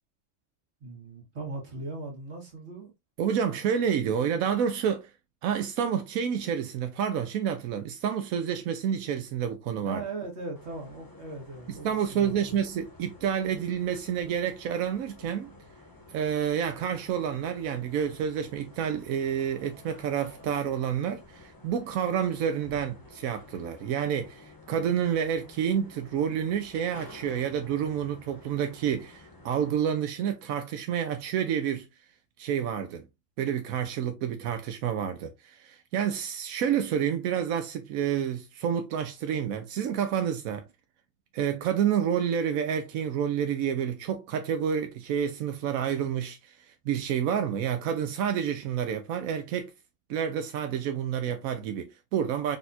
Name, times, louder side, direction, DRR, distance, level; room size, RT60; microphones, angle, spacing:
voice 1, 0.8-2.9 9.9-12.6, right 3 dB, 50° right, 2.0 m, -39 dB
voice 2, 3.2-5.1 5.4-10.0 11.8-15.5 16.1-31.9 32.4-33.0 33.4-40.7 41.3-49.7 50.1-52.6, right 8 dB, 90° right, 1.0 m, -29 dB
sound 1, 10.6-29.7, left 2 dB, 20° left, 0.8 m, -51 dB
4.1 x 3.5 x 2.6 m
omnidirectional pair, 1.4 m